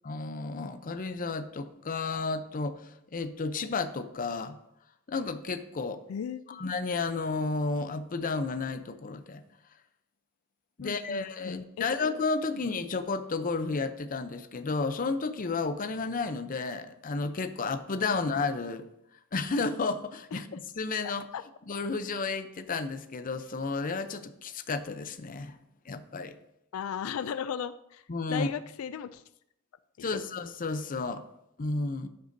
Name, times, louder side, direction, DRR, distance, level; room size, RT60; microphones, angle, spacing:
voice 1, 0.0-4.6 5.1-6.0 6.5-9.4 10.8-18.8 19.3-20.5 20.8-21.2 21.7-25.6 25.9-26.4 28.1-28.5 30.0-31.2 31.6-32.1, left 4 dB, 40° left, 10 dB, 0.6 m, -32 dB
voice 2, 6.1-6.6 10.8-11.9 12.5-12.6 20.3-20.4 21.3-21.4 26.7-29.2 30.0-30.2, left 8 dB, 90° left, 13 dB, 0.4 m, -36 dB
11.5 x 8.0 x 2.7 m, 0.80 s
head